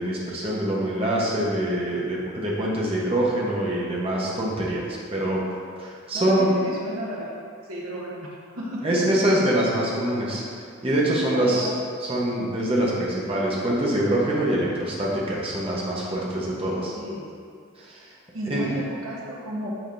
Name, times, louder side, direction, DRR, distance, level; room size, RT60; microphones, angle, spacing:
voice 1, 0.0-5.4 5.8-6.5 8.8-10.4 10.8-11.7 12.1-16.9 17.8-18.1 18.5-18.7, right 1 dB, 25° right, -5 dB, 1.1 m, -24 dB
voice 2, 6.1-8.3 8.5-9.4 11.3-11.7 16.4-17.3 18.3-19.7, equal, 85° right, -4 dB, 1.3 m, -34 dB
8.9 x 5.1 x 2.6 m, 2.3 s
head